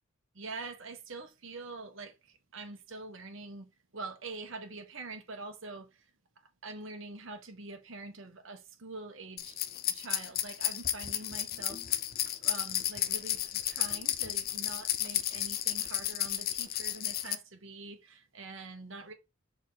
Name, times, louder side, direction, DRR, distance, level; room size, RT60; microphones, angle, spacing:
voice 1, 0.3-6.1 6.6-11.8 12.4-19.1, right 3 dB, 70° right, 1.4 m, -45 dB
sound 1, 9.4-17.3, left 12 dB, 45° left, 0.6 m, -33 dB
6.8 x 3.9 x 4.0 m
head